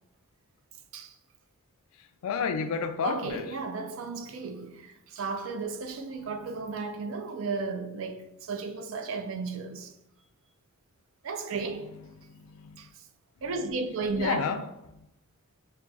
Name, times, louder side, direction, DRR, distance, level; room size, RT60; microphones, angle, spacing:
voice 1, 2.2-3.5 12.2-12.8 14.2-14.6 14.9-15.1, left 6 dB, 80° left, 0.4 m, -31 dB
voice 2, 3.0-9.9 11.2-12.0 12.8-12.9 13.4-14.5, right 4 dB, 65° right, 0.4 m, -34 dB
5.6 x 2.3 x 2.5 m
head